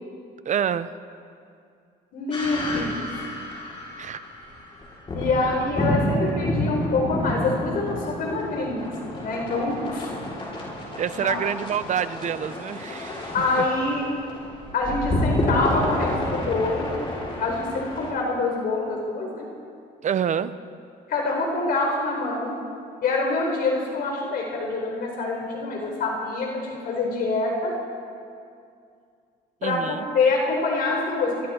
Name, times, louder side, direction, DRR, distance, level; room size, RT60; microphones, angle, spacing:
voice 1, 0.4-0.9 4.0-4.2 10.9-13.7 20.0-20.5 29.6-30.0, right 8 dB, 45° right, 13 dB, 0.9 m, -27 dB
voice 2, 2.1-3.0 5.1-8.9 9.2-10.1 11.1-11.4 13.3-14.1 14.7-16.9 17.4-19.5 21.1-22.6 23.0-27.7 29.6-31.5, left 3 dB, 60° left, 0 dB, 4.4 m, -25 dB
sound 1, 2.3-18.1, left 1 dB, 30° left, 6.7 m, -30 dB
25.0 x 23.5 x 4.5 m, 2.4 s
cardioid pair, 110°, 17 cm